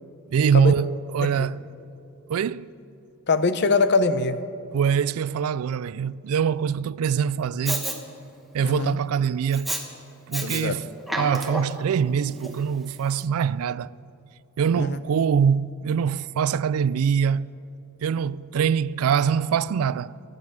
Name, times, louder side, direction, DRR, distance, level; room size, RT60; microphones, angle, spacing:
voice 1, 0.3-1.6 2.3-2.7 4.7-7.9 8.5-9.8 10.3-10.9 11.2-13.9 14.6-17.5 18.0-20.2, right 7 dB, 80° right, 0.3 m, -23 dB
voice 2, 3.3-4.4 8.6-9.0 10.4-10.7 14.8-15.0, left 3 dB, 50° left, 0.7 m, -23 dB
Respiratory sounds, 7.7-8.0 9.5-9.8 10.3-10.6 11.0-11.8 12.4-12.5, right 1 dB, ahead, 1.2 m, -29 dB
24.5 x 9.4 x 5.9 m
head